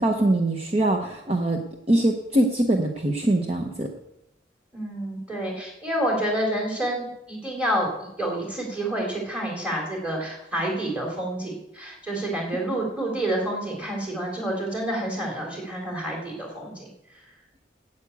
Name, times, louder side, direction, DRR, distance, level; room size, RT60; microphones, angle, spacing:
voice 1, 0.0-1.6 1.9-3.9, right 1 dB, 35° right, 2 dB, 0.9 m, -22 dB
voice 2, 4.7-16.9, right 1 dB, 5° right, -1 dB, 3.4 m, -28 dB
9.6 x 8.3 x 8.3 m, 0.85 s
head